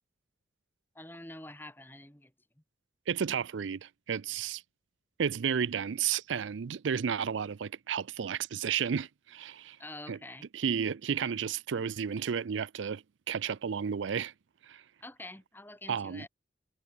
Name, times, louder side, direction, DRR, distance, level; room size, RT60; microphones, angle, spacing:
voice 1, 0.9-2.3 9.8-10.5 15.0-16.3, left 1 dB, 10° left, 2.5 m, -46 dB
voice 2, 3.1-4.6 5.2-9.8 10.1-10.2 10.5-14.3 14.6-14.8 15.9-16.3, right 7 dB, 85° right, 0.5 m, -32 dB
head